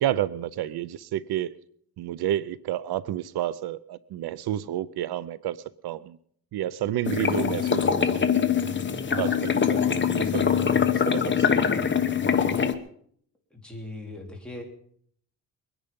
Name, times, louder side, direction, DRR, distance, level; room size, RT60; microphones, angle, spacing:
voice 1, 0.0-1.5 2.0-5.6 5.8-6.2 6.5-7.9 9.2-11.6, right 12 dB, 80° right, 18 dB, 0.6 m, -30 dB
sound 1, 7.0-12.7, left 7 dB, 30° left, 1.1 m, -23 dB
voice 2, 13.5-14.6, left 2 dB, 5° left, -1 dB, 3.4 m, -39 dB
22.0 x 10.5 x 5.4 m, 0.63 s
cardioid pair, 135°, 37 cm